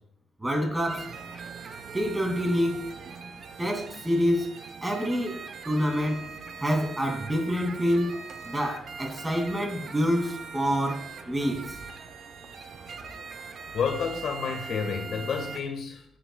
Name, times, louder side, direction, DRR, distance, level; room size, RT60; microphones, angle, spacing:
voice 1, 0.4-1.1 1.9-2.9 3.6-4.5 4.8-6.2 6.6-8.2 8.4-11.6, equal, 15° right, 1 dB, 2.6 m, -27 dB
sound 1, 0.9-15.6, right 5 dB, 55° right, 0.9 m, -41 dB
voice 2, 13.7-16.0, left 6 dB, 65° left, 3 dB, 1.6 m, -30 dB
9.7 x 8.9 x 2.4 m, 0.67 s
cardioid pair, 90°, 0 cm